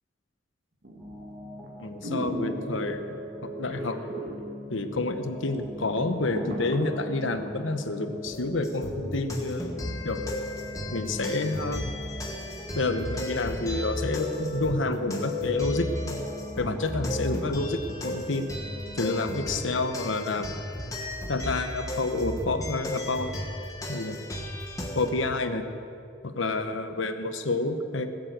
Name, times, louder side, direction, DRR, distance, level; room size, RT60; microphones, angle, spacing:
sound 1, 0.8-1.2 1.6-1.7 2.0-3.1 3.7-4.4 4.7-4.8 5.3-5.4 5.6-7.5 7.9-8.0, right 1 dB, 65° right, 2.2 m, -35 dB
sound 2, 1.0-19.6, left 3 dB, ahead, 2.1 m, -39 dB
voice 1, 1.8-3.0 3.4-4.0 4.7-9.8 10.0-10.2 10.9-11.8 12.7-16.2 16.6-18.5 19.0-20.6 21.3-23.4 23.9-24.2 24.9-25.7 26.2-28.1, left 2 dB, 85° left, 8 dB, 1.1 m, -29 dB
sound 3, 8.6-25.1, equal, 15° left, 1.4 m, -35 dB
19.5 x 7.6 x 7.5 m, 2.6 s
head